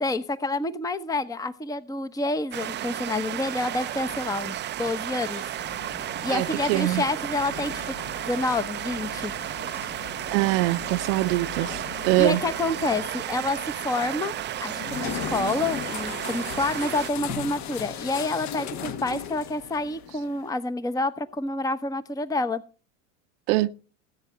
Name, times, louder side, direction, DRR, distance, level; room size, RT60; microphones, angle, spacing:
voice 1, 0.0-5.4 6.2-8.0 8.3-9.3 12.2-14.3 14.6-22.6, left 2 dB, 10° left, 0.9 m, -28 dB
sound 1, 2.5-17.1, right 12 dB, 30° right, 0.5 m, -33 dB
sound 2, 3.8-19.0 19.2-19.3, left 3 dB, 75° left, 7.4 m, -49 dB
sound 3, 5.6-20.5, left 8 dB, 45° left, 1.3 m, -39 dB
voice 2, 6.3-7.0 10.3-12.4 23.5-23.7, right 18 dB, 65° right, 0.8 m, -23 dB
18.5 x 9.0 x 3.1 m
hypercardioid pair, 95°, 39 cm